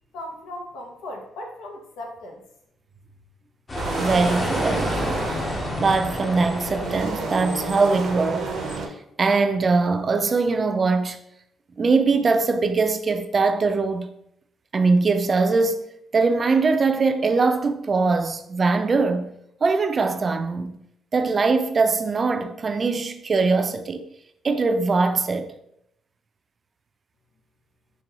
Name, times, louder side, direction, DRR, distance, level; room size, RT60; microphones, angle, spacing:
voice 1, 0.1-2.4, left 1 dB, 85° left, 0.8 m, -37 dB
sound 1, 3.7-8.8, left 1 dB, 25° left, 0.7 m, -30 dB
sound 2, 3.8-8.9, right 3 dB, 75° right, 0.6 m, -31 dB
voice 2, 4.0-5.2 5.8-8.5 9.2-11.2 11.8-14.1 14.7-15.8 16.1-19.3 19.6-20.7 21.1-24.0 24.4-25.5, right 4 dB, 40° right, 0.4 m, -21 dB
5.1 x 2.3 x 2.9 m
cardioid pair, 90°, 0 cm